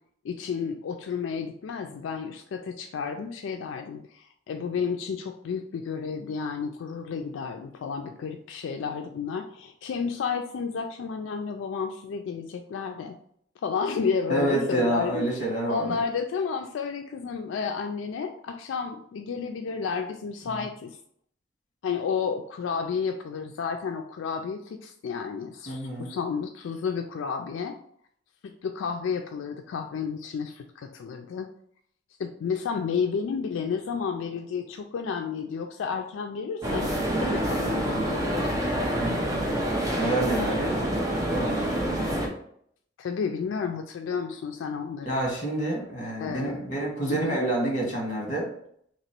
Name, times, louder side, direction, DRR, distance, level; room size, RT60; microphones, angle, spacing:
voice 1, 0.2-13.2 13.6-15.3 15.7-21.0 21.8-27.8 28.4-31.5 32.2-38.6 43.0-45.1 46.2-46.6 47.1-47.4, left 6 dB, 85° left, 5 dB, 0.3 m, -31 dB
voice 2, 14.3-16.0 25.7-26.1 38.9-39.6 39.9-41.0 41.3-41.6 45.0-48.5, right 1 dB, 40° left, -1 dB, 1.4 m, -28 dB
sound 1, 36.6-42.3, right 1 dB, 20° right, 0.6 m, -27 dB
3.0 x 2.9 x 4.3 m, 0.67 s
head